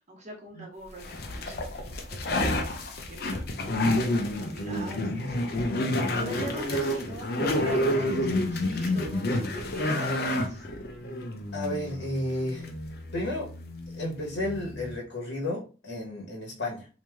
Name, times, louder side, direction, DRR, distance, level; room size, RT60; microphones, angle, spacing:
voice 1, 0.1-2.7 3.1-3.8 4.4-10.7, right 1 dB, 35° right, -1 dB, 1.1 m, -43 dB
sound 1, 1.0-14.9, left 1 dB, 55° left, 0.5 m, -29 dB
voice 2, 11.5-12.7 13.1-13.5 14.0-16.9, left 1 dB, 70° left, -2 dB, 1.1 m, -32 dB
3.1 x 2.7 x 3.4 m, 0.35 s
head